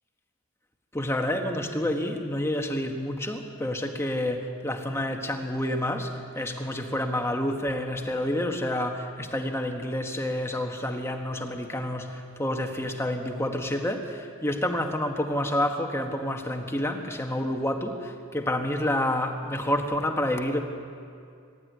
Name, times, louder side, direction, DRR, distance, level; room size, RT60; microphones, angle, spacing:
voice 1, 0.9-20.6, left 1 dB, 10° left, 3 dB, 1.3 m, -29 dB
24.5 x 12.0 x 9.5 m, 2.3 s
head